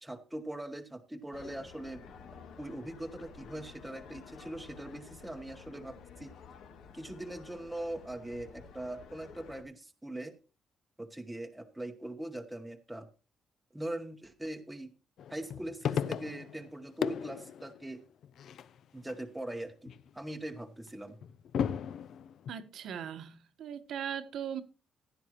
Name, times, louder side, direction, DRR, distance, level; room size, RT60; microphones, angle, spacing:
voice 1, 0.0-2.0 2.6-6.4 6.9-10.4 11.0-13.1 13.7-14.9 15.3-18.0 18.9-21.2, right 1 dB, 5° right, 0.9 m, -41 dB
sound 1, 1.3-9.6, left 6 dB, 80° left, 2.2 m, -52 dB
sound 2, 15.2-16.7 17.0-19.1 19.5-20.1 20.9-22.5, left 8 dB, 60° left, 0.6 m, -36 dB
voice 2, 22.5-24.6, right 8 dB, 65° right, 1.2 m, -39 dB
15.5 x 10.5 x 2.9 m
cardioid pair, 150°, 0 cm